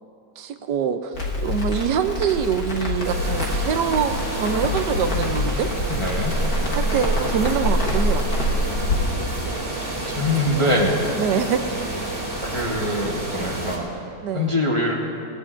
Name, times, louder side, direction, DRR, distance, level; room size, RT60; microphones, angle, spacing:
voice 1, 0.4-1.1 1.4-5.7 6.7-8.2 10.3-10.4 11.2-11.6 14.2-14.6, right 7 dB, 75° right, 8 dB, 1.2 m, -24 dB
Crackle, 1.1-9.0, left 1 dB, 55° left, 1.8 m, -25 dB
sound 1, 3.0-13.8, right 2 dB, 20° right, 2.4 m, -30 dB
voice 2, 5.9-6.3 10.1-11.0 12.4-13.9 14.3-15.0, left 1 dB, 20° left, -2 dB, 0.9 m, -23 dB
18.0 x 17.5 x 2.5 m, 2.7 s
omnidirectional pair, 1.9 m